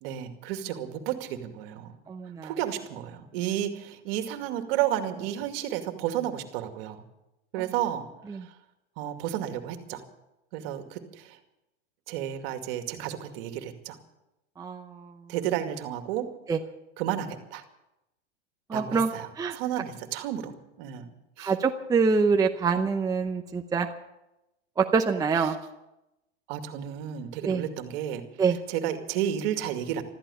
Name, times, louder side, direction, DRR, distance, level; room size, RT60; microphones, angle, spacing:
voice 1, 0.0-2.0 2.4-7.0 7.5-8.1 8.3-8.4 9.0-10.0 10.5-11.4 12.1-14.0 15.3-16.3 17.0-17.6 18.7-19.3 19.5-21.1 21.4-21.5 26.5-28.2 28.7-30.0, right 11 dB, 55° right, 6 dB, 2.4 m, -32 dB
voice 2, 2.1-2.5 8.3-8.5 14.6-15.1 16.5-16.6 18.7-19.6 21.4-23.9 24.8-25.6 27.4-27.7 28.4-28.6, right 5 dB, 10° right, 4 dB, 0.8 m, -25 dB
15.0 x 13.5 x 7.1 m, 0.91 s
hypercardioid pair, 125°, 35 cm